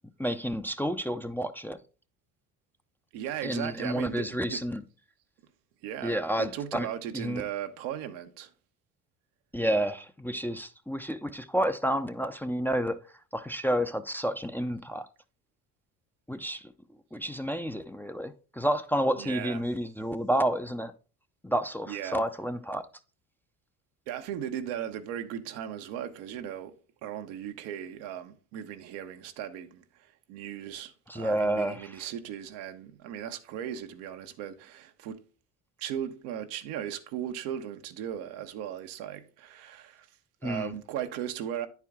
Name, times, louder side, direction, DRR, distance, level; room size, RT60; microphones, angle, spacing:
voice 1, 0.2-1.8 3.4-4.8 6.0-6.9 7.1-7.4 9.5-13.0 13.3-15.1 16.3-16.7 17.1-20.9 21.4-22.9 31.1-32.1 40.4-40.7, equal, 5° left, 0.6 m, -30 dB
voice 2, 3.1-4.6 5.8-8.5 19.2-19.6 21.9-22.2 24.1-26.8 27.0-35.2 35.8-40.1 40.4-41.7, right 10 dB, 75° right, 1.0 m, -37 dB
9.8 x 4.7 x 3.6 m
hypercardioid pair, 70°, 40 cm